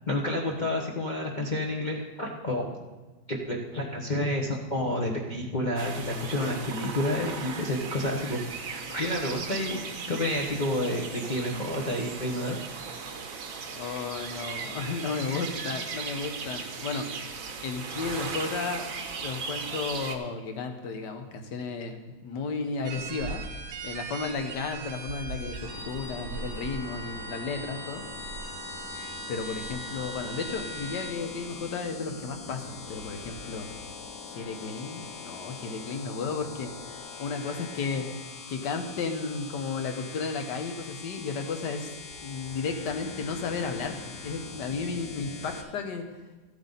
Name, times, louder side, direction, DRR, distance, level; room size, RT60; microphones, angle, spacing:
voice 1, 0.1-2.8 3.3-8.4 8.7-12.6, left 1 dB, 30° left, -2 dB, 0.9 m, -30 dB
sound 1, 5.8-20.2, right 5 dB, 55° right, 1.2 m, -37 dB
voice 2, 13.7-17.3 17.6-18.9 19.2-23.4 23.8-28.1 29.3-33.7 34.3-36.7 37.2-38.1 38.5-41.9 42.2-46.0, left 4 dB, 65° left, 6 dB, 1.6 m, -33 dB
sound 2, 22.8-31.1, right 3 dB, 85° right, 1.7 m, -39 dB
sound 3, 25.6-45.6, left 5 dB, 85° left, 1.7 m, -43 dB
14.0 x 8.7 x 4.0 m, 1.2 s
omnidirectional pair, 2.0 m